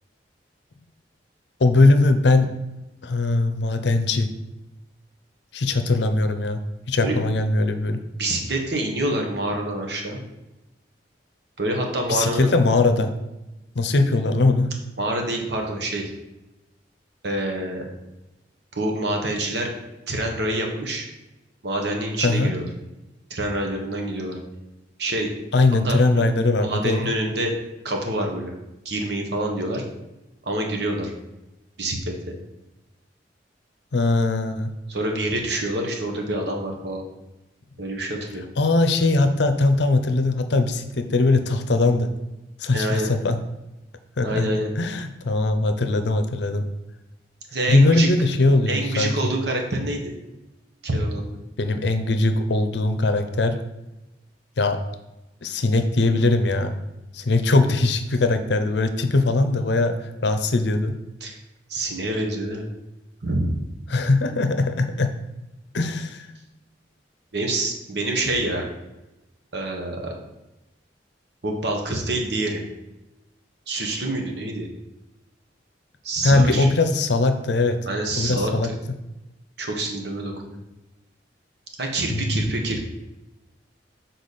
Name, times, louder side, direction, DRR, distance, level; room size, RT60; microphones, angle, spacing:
voice 1, 1.6-2.5 3.0-4.3 5.5-6.6 6.9-8.0 12.1-13.1 13.8-14.7 22.2-22.5 25.5-27.1 33.9-34.7 38.6-42.1 42.6-43.4 44.2-44.5 44.8-46.6 47.7-49.1 51.6-53.6 54.6-54.8 55.4-56.7 57.1-61.0 63.9-65.1 65.7-66.3 76.2-77.8 78.2-78.7 82.1-82.5, left 2 dB, 70° left, 8 dB, 0.6 m, -20 dB
voice 2, 8.2-10.2 11.6-12.5 15.0-16.1 17.2-17.9 18.7-19.7 20.1-21.0 21.6-22.7 23.3-24.4 25.0-25.3 25.8-26.2 26.6-27.5 27.8-28.5 28.8-29.8 30.4-31.1 31.8-32.0 32.3-32.4 34.9-37.0 37.8-38.5 42.7-43.1 44.2-44.7 47.5-48.1 48.7-50.1 50.8-51.3 61.2-61.4 61.7-62.7 63.2-63.5 67.3-68.7 69.5-70.1 71.4-72.6 73.7-74.7 76.0-76.7 77.9-78.7 79.6-80.6 81.8-82.8, right 1 dB, 65° right, 2 dB, 1.2 m, -26 dB
6.7 x 4.0 x 4.1 m, 0.99 s
head